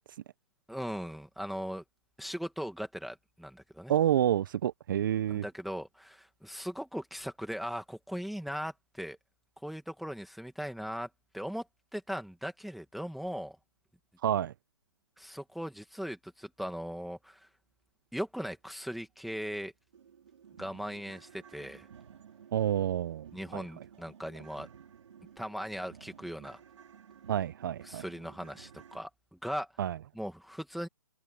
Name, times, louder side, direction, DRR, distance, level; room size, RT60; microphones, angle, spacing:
voice 1, 0.7-1.8 2.2-3.9 5.3-9.2 9.6-11.1 11.3-13.6 15.2-17.5 18.1-19.7 20.6-21.9 23.3-24.7 25.4-26.6 27.8-29.1 29.4-29.7 30.1-30.9, equal, ahead, 1.7 m, -39 dB
voice 2, 3.9-5.4 14.2-14.5 22.5-23.6 27.3-28.1 29.8-30.0, right 11 dB, 40° right, 0.6 m, -29 dB
sound 1, 19.1-19.2 19.5-19.6 19.9-29.0, right 8 dB, 60° right, 4.5 m, -55 dB
open air
hypercardioid pair, 155°, 18 cm